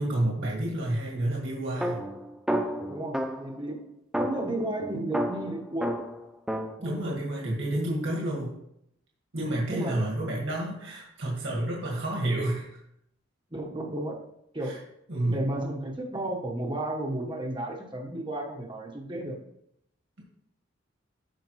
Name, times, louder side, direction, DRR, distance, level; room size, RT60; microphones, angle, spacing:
voice 1, 0.0-2.0 6.8-8.5 9.3-12.7 14.6-14.7 15.1-15.5, right 1 dB, 70° right, -3 dB, 1.8 m, -29 dB
sound 1, 1.8-3.6 4.1-6.8, equal, 5° right, 0.4 m, -31 dB
voice 2, 2.9-3.8 4.2-5.9 6.8-7.5 9.4-10.0 13.5-14.2 14.5-14.7 15.3-19.4, right 1 dB, 25° right, 0 dB, 1.2 m, -33 dB
13.0 x 5.0 x 3.1 m, 0.76 s
head